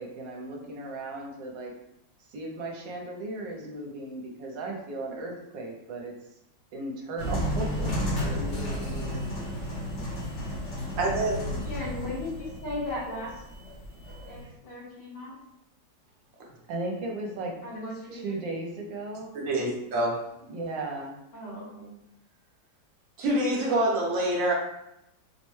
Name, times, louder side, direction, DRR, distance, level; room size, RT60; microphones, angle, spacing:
voice 1, 0.0-1.7 2.3-6.1 6.7-7.9 8.3-9.3 16.7-17.5 18.1-19.3 20.5-21.2, right 2 dB, 75° right, 0 dB, 1.4 m, -36 dB
sound 1, 7.2-14.4, equal, 50° left, 0.9 m, -32 dB
voice 2, 11.0-11.4 19.3-20.2 23.2-24.5, right 1 dB, 55° right, -2 dB, 1.0 m, -26 dB
voice 3, 11.6-13.4 14.3-15.4 17.6-18.4 21.3-21.9, left 1 dB, 70° left, -6 dB, 1.8 m, -37 dB
4.5 x 2.1 x 3.1 m, 0.83 s
omnidirectional pair, 2.0 m